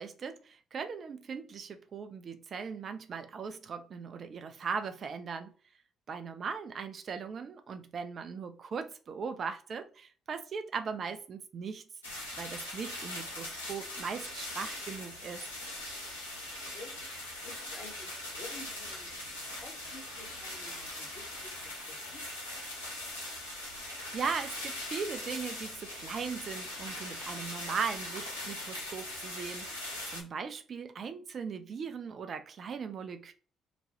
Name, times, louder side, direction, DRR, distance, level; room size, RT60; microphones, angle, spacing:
voice 1, 0.0-5.5 6.1-11.8 12.4-15.4 23.8-33.3, right 5 dB, 50° right, 0.5 m, -39 dB
sound 1, 12.0-30.2, left 1 dB, 90° left, 0.6 m, -41 dB
voice 2, 17.4-19.1 19.6-21.5 21.9-22.3, left 2 dB, 50° left, 1.2 m, -50 dB
3.0 x 2.2 x 2.9 m
figure-of-eight pair, 45°, 0 cm